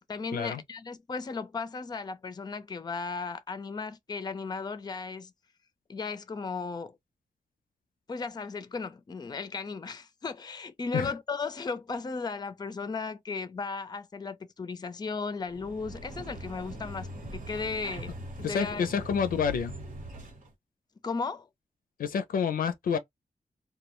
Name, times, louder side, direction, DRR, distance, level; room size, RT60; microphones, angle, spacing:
voice 1, 0.1-5.3 5.9-7.0 8.1-18.1 18.4-18.9 21.0-21.5, left 4 dB, 30° left, 0.4 m, -35 dB
sound 1, 15.4-20.5, right 1 dB, 75° right, 1.1 m, -41 dB
voice 2, 18.4-19.8 22.0-23.0, left 7 dB, 90° left, 0.4 m, -28 dB
2.2 x 2.1 x 3.0 m
wide cardioid pair, 90°, 14 cm